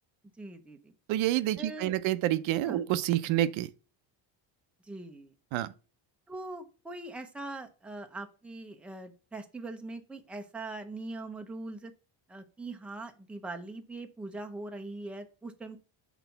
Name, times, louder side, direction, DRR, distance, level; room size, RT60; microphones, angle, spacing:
voice 1, 0.4-0.9 1.6-1.9 2.6-2.8 4.9-5.3 6.3-11.9 12.3-15.8, right 2 dB, ahead, 0.6 m, -41 dB
voice 2, 1.1-3.7 5.5-5.7, right 13 dB, 80° right, 0.7 m, -28 dB
6.2 x 4.0 x 5.6 m
cardioid pair, 150°, 46 cm